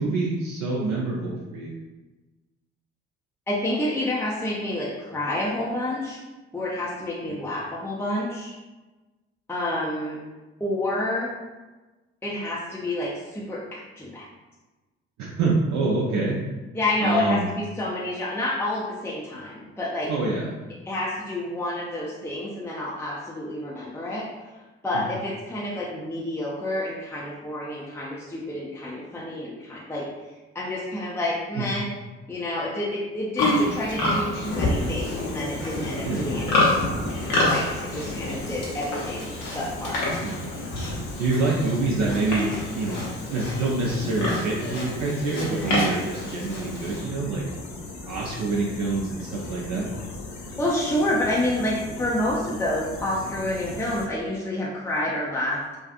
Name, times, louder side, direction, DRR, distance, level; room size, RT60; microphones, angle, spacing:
voice 1, 0.0-1.7 7.3-7.4 15.2-16.4 17.0-17.5 20.1-20.5 24.9-25.0 31.6-31.7 36.0-36.3 40.2-40.4 41.2-43.0 43.3-47.4 48.1-49.9, right 3 dB, 55° right, -4 dB, 0.5 m, -26 dB
voice 2, 3.5-6.2 6.5-8.5 9.5-10.2 10.6-11.3 12.2-14.3 16.7-20.1 20.9-24.3 24.8-30.0 30.5-31.9 32.3-36.9 37.4-39.3 39.5-40.1 50.6-55.8, left 1 dB, 5° left, -5 dB, 0.5 m, -29 dB
Livestock farm animals working animals, 33.4-47.0, left 1 dB, 65° left, 0.9 m, -28 dB
sound 1, 34.4-54.1, left 2 dB, 85° left, 0.5 m, -38 dB
2.6 x 2.4 x 2.4 m, 1.2 s
hypercardioid pair, 45°, 33 cm